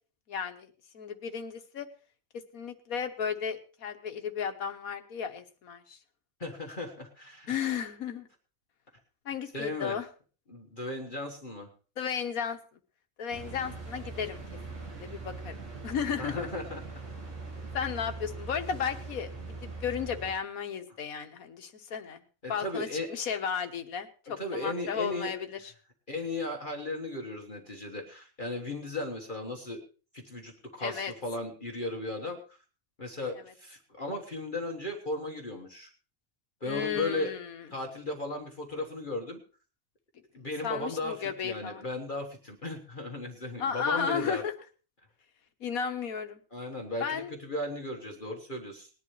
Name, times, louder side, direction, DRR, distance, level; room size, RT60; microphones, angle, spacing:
voice 1, 0.3-1.9 2.5-6.0 7.5-8.3 9.3-10.1 12.0-12.6 13.2-14.4 14.7-15.6 15.8-16.5 17.7-22.2 22.5-25.7 30.8-31.1 36.7-37.6 40.6-41.8 43.6-44.5 45.6-46.4 47.0-47.3, left 7 dB, 90° left, 7 dB, 1.6 m, -34 dB
voice 2, 6.4-7.5 9.5-10.0 10.5-11.7 16.2-16.8 22.4-23.1 24.4-25.3 26.1-29.8 30.1-32.6 33.0-35.9 36.6-37.3 37.7-39.4 40.3-44.4 46.5-48.9, left 2 dB, 35° left, 1 dB, 1.6 m, -36 dB
sound 1, 13.3-20.3, right 3 dB, 60° right, 2.8 m, -41 dB
20.0 x 11.0 x 3.2 m, 0.37 s
omnidirectional pair, 1.4 m